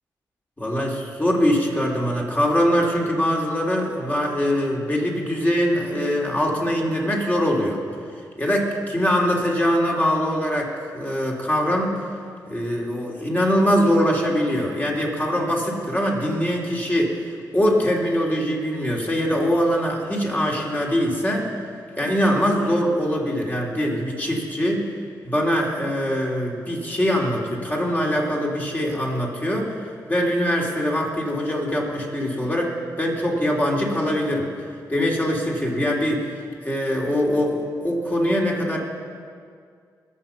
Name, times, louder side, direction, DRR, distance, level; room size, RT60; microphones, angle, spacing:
voice 1, 0.6-7.8 8.4-12.0 12.5-17.2 17.5-21.5 22.0-24.8 25.2-29.7 30.1-32.7 33.0-34.5 34.9-36.2 36.6-38.8, equal, 20° left, -2 dB, 3.5 m, -22 dB
21.0 x 7.2 x 6.0 m, 2.2 s
cardioid pair, 55°, 8 cm